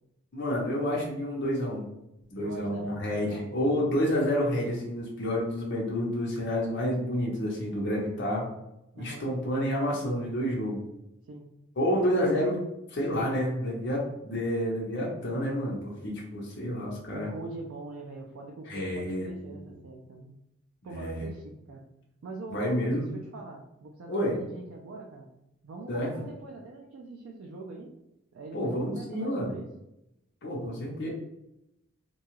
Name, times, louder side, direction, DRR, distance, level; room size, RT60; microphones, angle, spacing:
voice 1, 0.3-1.8 2.3-8.5 9.0-10.8 11.8-17.3 18.7-19.6 20.8-21.3 22.5-23.1 24.1-24.4 25.9-26.1 28.5-29.5 30.4-31.1, equal, 50° left, -4 dB, 0.6 m, -29 dB
voice 2, 2.4-3.6 8.9-9.3 11.3-11.5 17.1-20.3 20.8-21.9 22.2-25.3 25.6-27.9 28.3-29.7, right 3 dB, 70° right, -1 dB, 0.4 m, -43 dB
2.7 x 2.3 x 2.9 m, 0.86 s
head